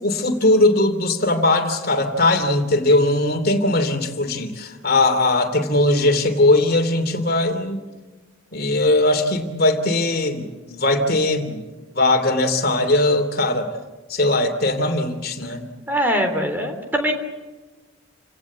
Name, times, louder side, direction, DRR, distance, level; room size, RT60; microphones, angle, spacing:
voice 1, 0.0-7.8 8.5-11.7 11.9-13.7 14.1-15.7, left 2 dB, 50° left, 7 dB, 2.9 m, -19 dB
voice 2, 15.9-17.1, equal, 10° right, 5 dB, 3.5 m, -22 dB
29.5 x 18.0 x 8.5 m, 1.2 s
head